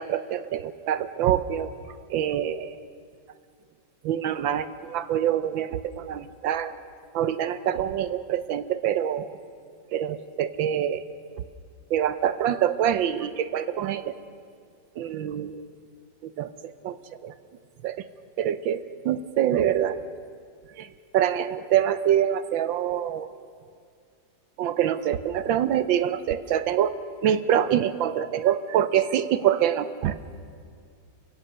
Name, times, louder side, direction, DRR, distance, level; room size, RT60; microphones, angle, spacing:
voice 1, 0.0-1.7 2.1-2.8 4.0-6.7 7.1-9.3 9.9-11.0 11.9-14.1 15.0-15.6 16.4-16.5 16.8-17.0 17.2-17.3 17.8-18.0 18.4-20.0 20.8-20.9 21.1-23.3 24.6-26.9 27.2-30.2, right 10 dB, 75° right, 13 dB, 1.4 m, -25 dB
28.5 x 16.5 x 6.7 m, 2.2 s
omnidirectional pair, 2.1 m